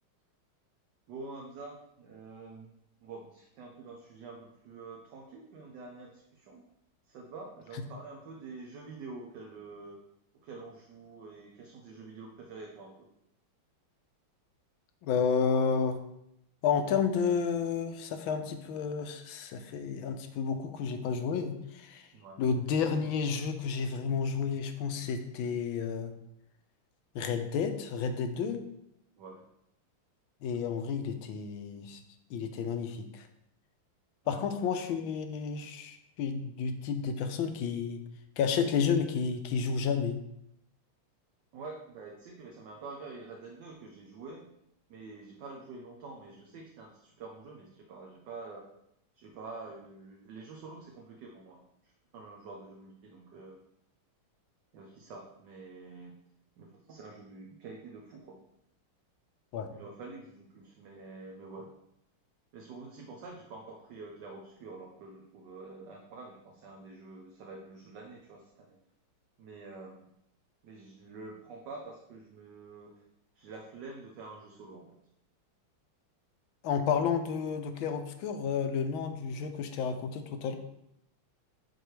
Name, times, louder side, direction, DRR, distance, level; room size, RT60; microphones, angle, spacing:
voice 1, 1.1-2.7 3.0-6.6 7.1-10.0 10.4-13.1 22.1-22.4 29.2-29.4 34.2-34.4 41.5-44.5 44.9-48.7 49.1-53.6 54.7-56.2 56.6-58.4 59.7-61.7 62.5-68.8 69.4-70.1 70.6-73.0 73.3-75.0, right 3 dB, 65° right, 0 dB, 1.3 m, -47 dB
voice 2, 15.0-16.0 16.6-22.1 22.4-26.1 27.1-28.6 30.4-32.0 32.3-33.3 34.3-38.0 38.4-40.2 59.5-59.7 76.6-80.6, left 6 dB, 80° left, 7 dB, 1.4 m, -31 dB
9.0 x 4.7 x 3.2 m, 0.79 s
omnidirectional pair, 2.3 m